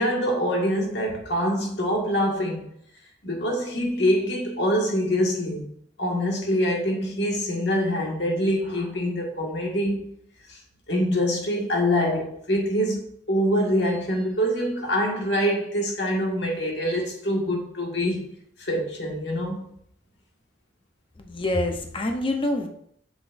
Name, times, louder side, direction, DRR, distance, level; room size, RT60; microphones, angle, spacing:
voice 1, 0.0-2.6 3.2-5.6 6.0-10.1 10.5-10.6 10.9-18.3 18.6-19.7, equal, 65° left, 1.8 m, -25 dB
voice 2, 21.2-22.7, left 1 dB, 30° left, 0.8 m, -26 dB
7.4 x 7.2 x 2.6 m
head